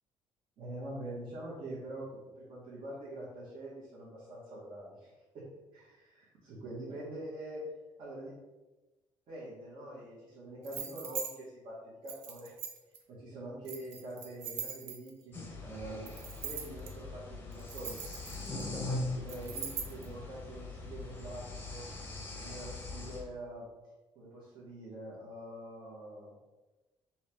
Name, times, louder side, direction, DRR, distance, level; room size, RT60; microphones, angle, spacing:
voice 1, 0.6-5.4 5.7-7.6 8.0-8.3 9.3-12.5 13.1-21.8 22.3-23.7 24.1-26.4, right 1 dB, 60° right, -8 dB, 1.4 m, -45 dB
sound 1, 10.6-11.3 12.1-13.0 13.6-15.2 16.1-16.9 17.5-18.6 19.3-20.1, right 7 dB, 90° right, 0.7 m, -41 dB
sound 2, 15.3-23.2, left 2 dB, 20° left, 0.7 m, -41 dB
4.5 x 3.0 x 3.4 m, 1.1 s
cardioid pair, 160°, 10 cm